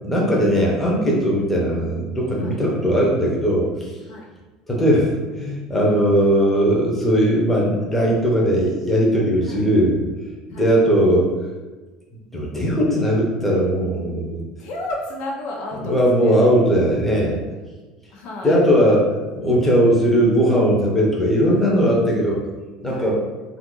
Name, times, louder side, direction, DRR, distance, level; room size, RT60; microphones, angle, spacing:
voice 1, 0.0-3.9 4.7-10.0 10.6-11.3 12.3-14.4 15.8-17.4 18.4-19.0 19.3-22.4 22.8-23.2, equal, 10° left, -3 dB, 0.7 m, -18 dB
voice 2, 14.6-16.4 18.1-18.7 22.9-23.1, left 1 dB, 60° left, -1 dB, 0.7 m, -32 dB
2.5 x 2.5 x 3.8 m, 1.2 s
cardioid pair, 140°, 2 cm